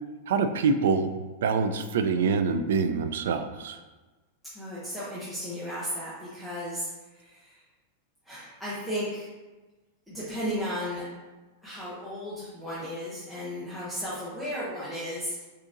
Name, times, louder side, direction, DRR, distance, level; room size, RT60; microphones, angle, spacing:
voice 1, 0.3-1.1 1.4-3.8, right 5 dB, 80° right, 8 dB, 0.4 m, -25 dB
voice 2, 4.5-7.6 8.2-9.3 10.1-11.1 11.6-15.3, equal, ahead, -12 dB, 0.7 m, -34 dB
6.6 x 2.7 x 2.5 m, 1.2 s
supercardioid pair, 175°, 0 cm